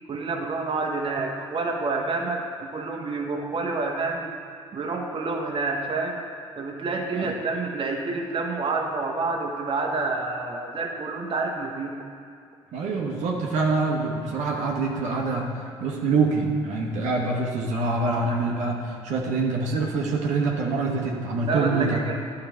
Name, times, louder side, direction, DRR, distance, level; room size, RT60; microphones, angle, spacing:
voice 1, 0.1-2.4 2.7-4.3 4.7-6.2 6.6-11.9 21.5-22.2, right 3 dB, 40° right, 1 dB, 1.1 m, -28 dB
voice 2, 12.7-22.0, right 3 dB, 60° right, -1 dB, 1.0 m, -25 dB
11.5 x 3.9 x 4.3 m, 2.4 s
hypercardioid pair, 55°, 14 cm